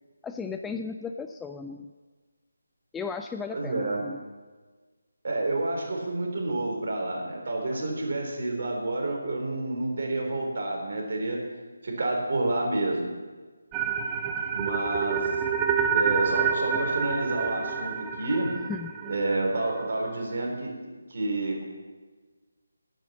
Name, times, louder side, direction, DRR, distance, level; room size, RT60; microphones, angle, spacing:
voice 1, 0.2-1.9 2.9-4.2 7.8-7.9 18.7-18.9, left 5 dB, 5° left, 6 dB, 0.3 m, -35 dB
voice 2, 3.5-4.0 5.2-11.4 11.8-13.1 14.5-15.3 15.9-18.5 19.1-20.7 21.1-21.7, right 2 dB, 45° right, 0 dB, 3.7 m, -29 dB
sound 1, 13.7-19.8, right 7 dB, 15° right, 0.8 m, -28 dB
12.0 x 9.0 x 7.5 m, 1.4 s
figure-of-eight pair, 155°, 0 cm